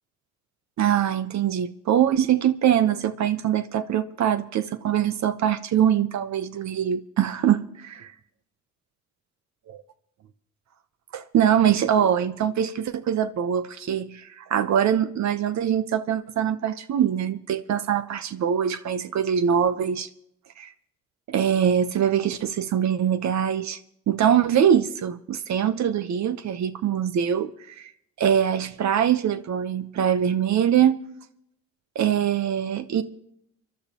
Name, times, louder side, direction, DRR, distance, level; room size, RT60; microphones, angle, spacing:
voice 1, 0.8-8.1 9.7-9.8 11.1-20.1 20.6-20.7 21.3-23.8 24.1-27.9 28.2-30.9 31.9-33.0, right 9 dB, 65° right, 0.9 m, -23 dB
28.5 x 12.0 x 2.9 m
cardioid pair, 90°, 30 cm